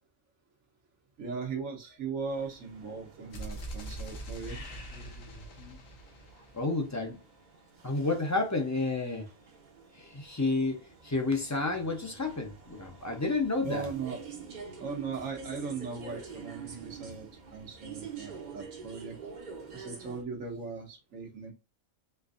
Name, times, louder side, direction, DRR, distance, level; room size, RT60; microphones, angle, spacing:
voice 1, 1.2-4.6 13.6-14.2 14.8-19.2 19.7-21.5, right 5 dB, 85° right, 1.4 m, -38 dB
sound 1, 2.3-20.2, right 5 dB, 45° right, 0.7 m, -48 dB
sound 2, 3.3-7.2, right 1 dB, 80° left, 1.2 m, -43 dB
sound 3, 4.3-5.9, left 2 dB, 50° left, 1.0 m, -48 dB
voice 2, 6.5-7.2 7.8-9.3 10.0-13.9, left 3 dB, 20° left, 0.5 m, -30 dB
4.4 x 2.5 x 2.4 m
omnidirectional pair, 1.3 m